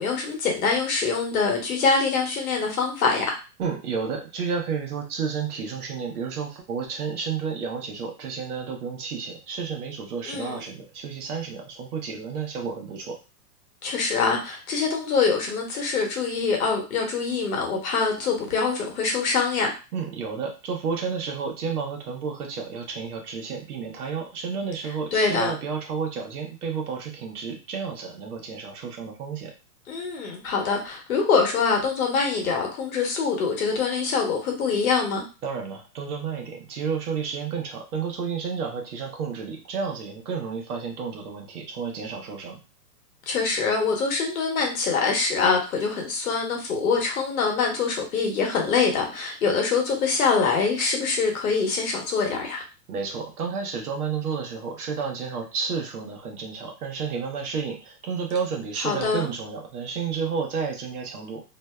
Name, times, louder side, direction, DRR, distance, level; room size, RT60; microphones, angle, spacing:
voice 1, 0.0-3.2 10.3-10.6 13.8-19.7 25.1-25.5 29.9-35.2 43.3-52.6 58.8-59.3, left 5 dB, 55° left, 1 dB, 1.0 m, -24 dB
voice 2, 3.6-13.2 19.9-29.5 35.4-42.6 52.9-61.4, right 6 dB, 65° right, 3 dB, 0.8 m, -31 dB
2.6 x 2.1 x 2.2 m, 0.31 s
hypercardioid pair, 165°, 50 cm